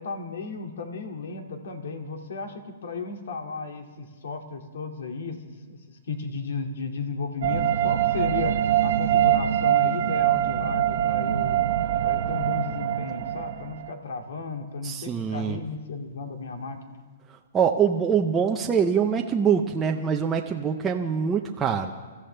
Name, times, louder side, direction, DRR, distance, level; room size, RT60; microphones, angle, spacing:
voice 1, 0.0-11.6 12.0-17.0, left 4 dB, 70° left, 4 dB, 2.2 m, -34 dB
sound 1, 7.4-13.9, right 11 dB, 55° right, 0.7 m, -23 dB
voice 2, 14.8-15.6 17.5-21.9, right 7 dB, 10° right, 2 dB, 0.6 m, -24 dB
27.5 x 14.5 x 3.3 m, 1.4 s
hypercardioid pair, 170°, 0 cm